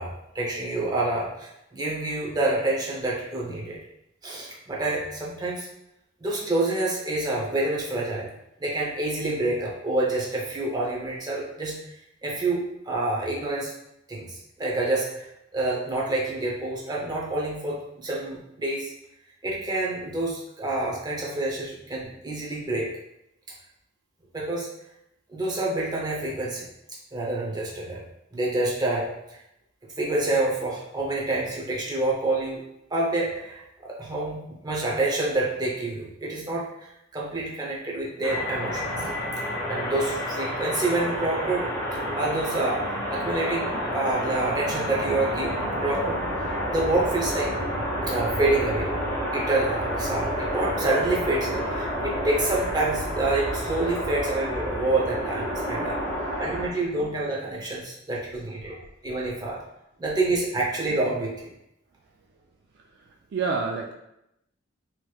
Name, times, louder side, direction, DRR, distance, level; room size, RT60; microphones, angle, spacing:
voice 1, 0.0-3.8 4.2-5.7 6.2-8.3 8.6-11.8 12.2-13.7 14.1-15.3 15.5-18.9 19.4-22.9 24.3-24.7 25.3-26.6 27.1-28.0 28.3-29.1 30.0-32.6 32.9-34.4 34.6-38.9 39.7-41.7 42.1-46.2 46.7-47.5 48.1-48.9 49.3-56.0 56.4-58.7 59.0-59.6 60.0-61.5, right 2 dB, 20° right, -4 dB, 0.7 m, -27 dB
sound 1, 38.2-56.7, equal, 5° left, 1.4 m, -29 dB
voice 2, 62.7-63.9, right 4 dB, 60° right, 1 dB, 0.3 m, -29 dB
3.2 x 3.0 x 2.3 m, 0.84 s
head